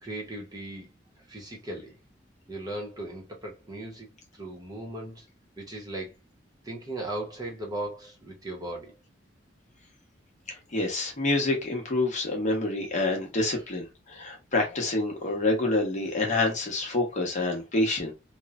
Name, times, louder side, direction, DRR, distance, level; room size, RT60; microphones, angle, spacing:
voice 1, 0.0-0.9 1.3-2.0 2.5-4.1 4.4-5.2 5.6-6.1 6.6-9.0 13.1-13.2 13.5-13.6, right 1 dB, 20° right, 0.8 m, -37 dB
voice 2, 10.5-18.1, left 2 dB, 40° left, 0.8 m, -27 dB
3.0 x 2.1 x 2.3 m
head